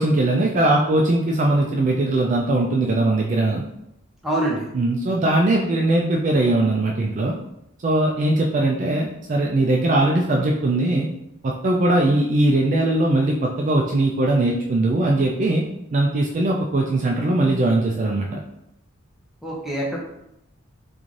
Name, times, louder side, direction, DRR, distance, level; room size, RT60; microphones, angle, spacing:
voice 1, 0.0-3.6 4.7-7.3 7.8-11.1 11.4-15.6 15.9-18.4, right 2 dB, 35° right, -1 dB, 0.3 m, -20 dB
voice 2, 4.2-4.7 19.4-20.0, right 1 dB, ahead, -4 dB, 0.7 m, -25 dB
3.7 x 2.5 x 3.1 m, 0.81 s
head